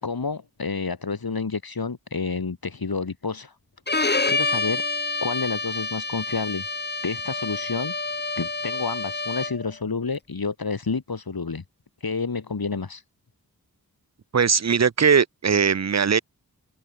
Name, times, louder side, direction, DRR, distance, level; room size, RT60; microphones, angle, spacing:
voice 1, 0.0-3.6 3.9-4.9 5.2-6.6 7.0-8.0 8.4-11.6 12.0-13.0, left 4 dB, 75° left, 3.6 m, -29 dB
Bowed string instrument, 3.9-9.7, left 3 dB, 30° left, 1.2 m, -28 dB
voice 2, 14.3-16.2, right 6 dB, 45° right, 0.7 m, -20 dB
open air
wide cardioid pair, 65°, 37 cm